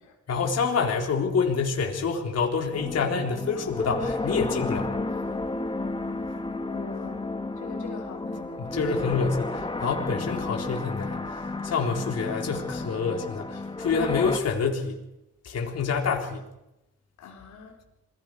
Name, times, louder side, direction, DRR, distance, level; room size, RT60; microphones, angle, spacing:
voice 1, 0.3-4.9 8.6-15.0 15.4-16.5, left 5 dB, 55° left, 1 dB, 4.2 m, -27 dB
sound 1, 2.7-14.4, left 2 dB, 15° left, 2.2 m, -32 dB
voice 2, 6.7-7.3 7.6-8.8 17.2-17.8, left 5 dB, 75° left, 1 dB, 4.0 m, -43 dB
28.5 x 21.0 x 4.9 m, 0.88 s
cardioid pair, 90°, 30 cm